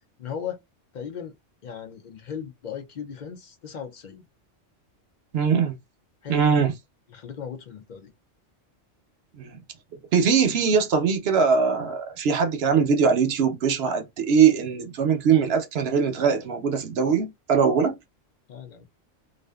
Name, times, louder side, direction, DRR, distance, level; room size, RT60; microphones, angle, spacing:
voice 1, 0.2-0.6 0.9-1.3 1.6-4.2 6.2-6.6 7.1-8.1 18.5-18.8, left 7 dB, 60° left, 0.5 m, -36 dB
voice 2, 5.3-5.8 6.3-6.7 9.4-9.6 10.1-17.9, right 6 dB, 65° right, 0.7 m, -21 dB
2.4 x 2.4 x 2.2 m
omnidirectional pair, 1.3 m